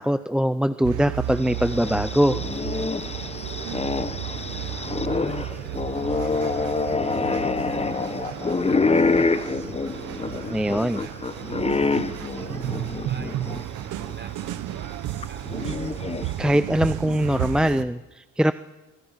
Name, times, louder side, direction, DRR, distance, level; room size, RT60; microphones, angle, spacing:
voice 1, 0.0-2.4 10.5-11.0 16.4-18.5, equal, 5° right, 12 dB, 0.7 m, -22 dB
sound 1, 0.8-17.9, right 12 dB, 90° right, 1.3 m, -33 dB
sound 2, 1.4-13.6 14.0-14.1 15.2-16.5, left 4 dB, 20° left, 1.1 m, -26 dB
voice 2, 3.5-15.5, right 3 dB, 35° right, 6 dB, 4.5 m, -48 dB
25.0 x 24.0 x 5.9 m, 1.0 s
cardioid pair, 90°, 30 cm